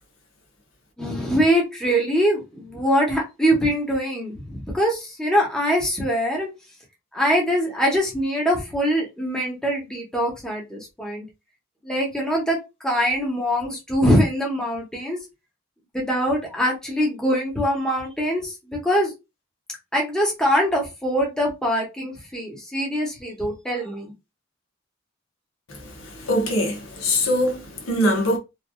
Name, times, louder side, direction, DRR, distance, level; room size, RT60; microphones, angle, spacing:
voice 1, 1.0-6.5 7.1-11.3 11.8-15.2 15.9-19.1 19.9-24.1, equal, 5° left, 0.8 m, -23 dB
voice 2, 25.7-28.4, left 1 dB, 75° left, 1.0 m, -23 dB
3.1 x 2.5 x 2.3 m
head